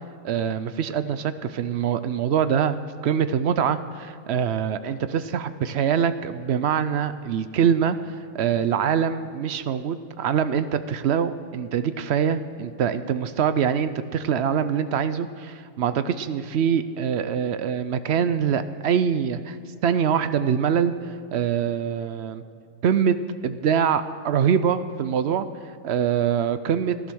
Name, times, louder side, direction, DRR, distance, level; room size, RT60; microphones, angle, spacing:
voice 1, 0.2-2.8 3.0-19.6 19.8-20.9 21.3-22.4 22.8-23.2 23.4-25.5 25.8-27.0, right 8 dB, 65° right, 12 dB, 0.7 m, -24 dB
15.5 x 11.5 x 6.2 m, 2.4 s
omnidirectional pair, 1.6 m